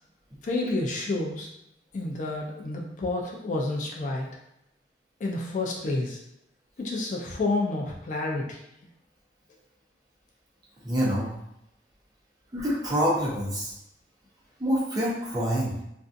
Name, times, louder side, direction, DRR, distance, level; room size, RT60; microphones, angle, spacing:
voice 1, 0.4-1.5 1.9-4.3 5.2-6.2 6.8-8.6, left 2 dB, 45° left, -1 dB, 0.3 m, -29 dB
voice 2, 10.8-11.3 12.5-13.7 14.6-15.8, equal, 20° right, -6 dB, 0.7 m, -26 dB
2.5 x 2.3 x 2.5 m, 0.81 s
head